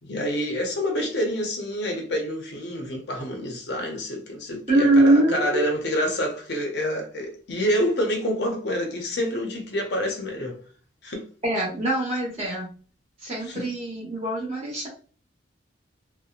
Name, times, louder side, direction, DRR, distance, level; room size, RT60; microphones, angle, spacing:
voice 1, 0.0-10.6 11.0-11.2 13.4-13.7, equal, 55° left, 0.6 m, -27 dB
voice 2, 4.7-5.6 11.4-12.7 13.2-14.9, right 1 dB, 30° right, 1.0 m, -22 dB
2.8 x 2.0 x 2.4 m
head